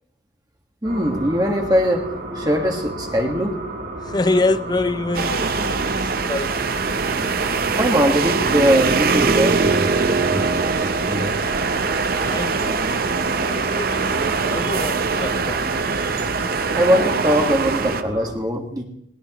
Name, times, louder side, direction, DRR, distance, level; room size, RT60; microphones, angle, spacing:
voice 1, 0.8-2.0 2.3-3.5 7.8-11.3 16.7-18.8, equal, 20° right, 1 dB, 1.6 m, -21 dB
sound 1, 0.8-18.3, right 1 dB, 65° right, 6.5 m, -32 dB
voice 2, 4.0-6.7 12.3-13.1 13.4-15.6, left 2 dB, 25° left, 12 dB, 0.6 m, -26 dB
sound 2, 5.1-18.0, right 4 dB, 50° right, 0.6 m, -22 dB
20.0 x 19.5 x 3.0 m, 0.79 s
head